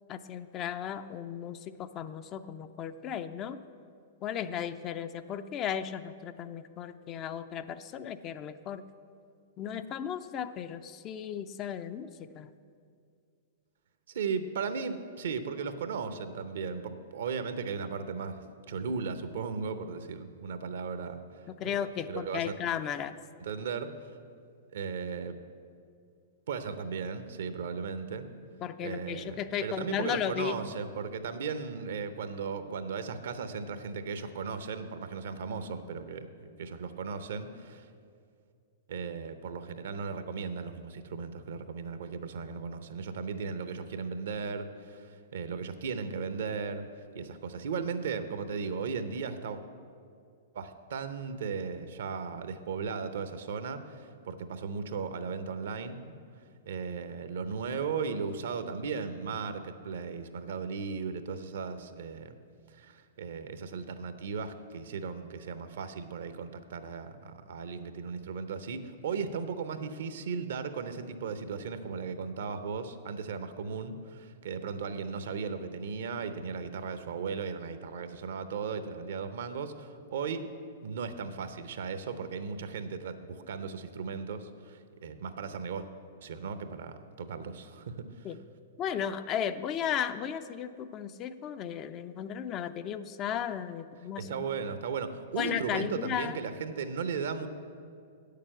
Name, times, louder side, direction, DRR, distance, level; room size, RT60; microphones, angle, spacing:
voice 1, 0.1-3.6 4.2-8.9 9.6-12.5 21.5-23.2 28.6-30.6 88.2-88.4 88.8-94.3 95.4-96.4, left 9 dB, 35° left, 11 dB, 0.4 m, -35 dB
voice 2, 14.1-21.2 21.6-21.7 22.1-22.5 23.4-23.9 24.7-25.4 26.5-28.3 28.8-36.3 36.6-37.9 38.9-46.8 47.1-49.6 50.5-56.1 56.7-62.3 62.7-80.4 80.8-85.9 86.2-88.3 94.2-97.5, right 5 dB, 65° right, 10 dB, 0.7 m, -36 dB
8.7 x 6.7 x 7.6 m, 2.3 s
figure-of-eight pair, 105°, 0 cm